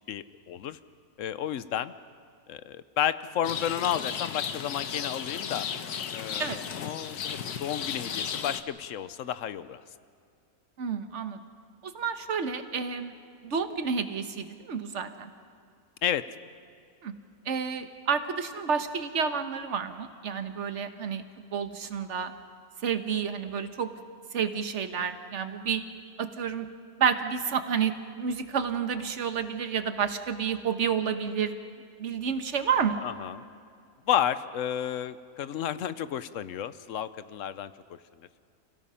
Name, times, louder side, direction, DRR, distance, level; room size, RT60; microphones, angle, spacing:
voice 1, 0.1-0.8 1.2-1.9 2.5-5.7 6.1-9.8 16.0-16.3 33.0-33.4 34.1-38.0, left 10 dB, 60° left, 14 dB, 1.0 m, -32 dB
Rain, 3.4-8.6, left 8 dB, 80° left, 1.5 m, -34 dB
voice 2, 10.8-11.4 11.8-13.1 13.4-15.3 17.0-17.1 17.4-21.2 21.5-22.3 22.8-23.9 24.3-25.8 26.2-26.7 27.0-27.9 28.2-31.5 32.0-33.0, right 7 dB, 50° right, 9 dB, 1.4 m, -30 dB
29.5 x 17.0 x 5.7 m, 2.4 s
omnidirectional pair, 1.6 m